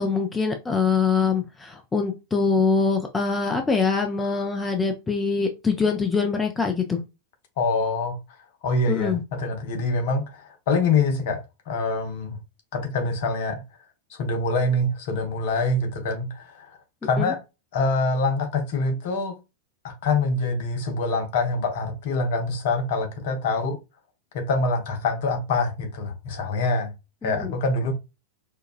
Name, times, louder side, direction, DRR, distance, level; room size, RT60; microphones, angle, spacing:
voice 1, 0.0-7.0 8.9-9.2 17.2-17.3 27.2-27.5, left 5 dB, 15° left, 0.5 m, -24 dB
voice 2, 7.6-8.2 8.6-12.4 12.7-13.6 14.1-16.8 17.0-17.4 17.7-19.4 19.8-23.8 24.3-26.9 27.2-27.9, left 3 dB, 55° left, 1.0 m, -25 dB
4.5 x 2.3 x 2.4 m
figure-of-eight pair, 90°, 0 cm